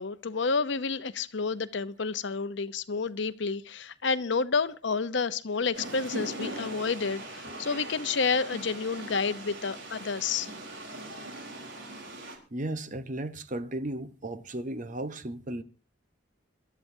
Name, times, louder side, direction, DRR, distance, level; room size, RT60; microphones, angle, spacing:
voice 1, 0.0-10.5, left 4 dB, 70° left, 0.8 m, -30 dB
sound 1, 5.7-12.4, right 1 dB, 80° right, 4.1 m, -40 dB
voice 2, 12.5-15.6, right 1 dB, 40° right, 1.0 m, -35 dB
26.5 x 13.0 x 2.7 m
head